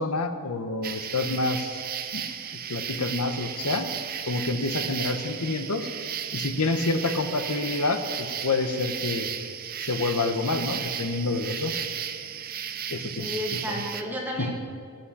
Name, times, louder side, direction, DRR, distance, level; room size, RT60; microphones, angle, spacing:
voice 1, 0.0-1.8 2.1-2.2 2.7-3.9 4.3-5.9 6.3-9.3 9.8-11.8 12.9-13.8 14.4-14.5, left 3 dB, 85° left, 7 dB, 1.0 m, -28 dB
sound 1, 0.8-14.0, right 8 dB, 40° right, 0.6 m, -34 dB
voice 2, 13.1-14.6, equal, 10° right, -3 dB, 2.3 m, -32 dB
15.0 x 6.1 x 9.8 m, 2.2 s
head